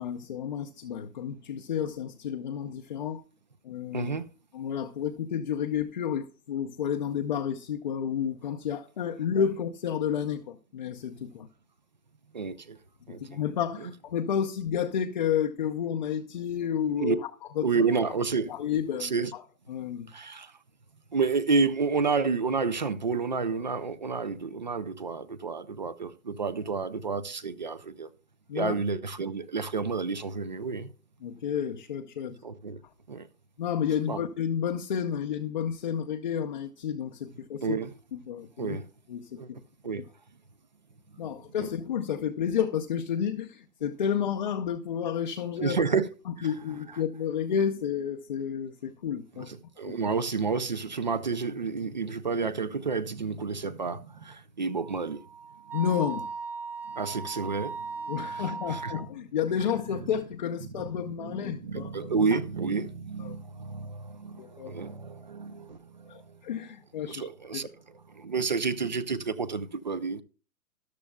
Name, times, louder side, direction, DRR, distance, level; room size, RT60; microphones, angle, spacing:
voice 1, 0.0-3.2 3.6-4.1 4.5-11.5 13.1-17.2 17.6-17.7 18.5-19.4 19.7-20.1 28.5-28.8 31.2-32.4 33.6-37.8 38.1-38.8 39.1-39.4 41.2-45.8 46.3-49.5 49.9-50.0 55.7-56.3 58.1-62.4 63.2-63.3 64.4-64.7 66.1-67.3 67.5-67.6, left 8 dB, 30° left, 0.5 m, -31 dB
voice 2, 3.9-4.3 12.3-12.8 13.1-13.4 13.8-13.9 17.0-17.2 17.6-18.5 19.0-19.3 20.1-20.5 21.1-28.1 28.5-30.9 32.4-32.8 33.1-33.3 34.1-34.2 37.6-37.9 38.6-38.9 39.4-39.5 39.8-40.0 41.2-41.3 41.6-41.7 45.6-46.1 46.4-46.5 49.4-55.2 56.9-57.9 58.3-58.9 60.6-60.7 61.0-66.2 67.1-67.7 68.1-70.2, right 4 dB, 35° right, 0.4 m, -30 dB
Wind instrument woodwind instrument, 54.7-59.1, right 5 dB, 15° right, 1.3 m, -38 dB
13.5 x 11.5 x 2.2 m
hypercardioid pair, 150°, 46 cm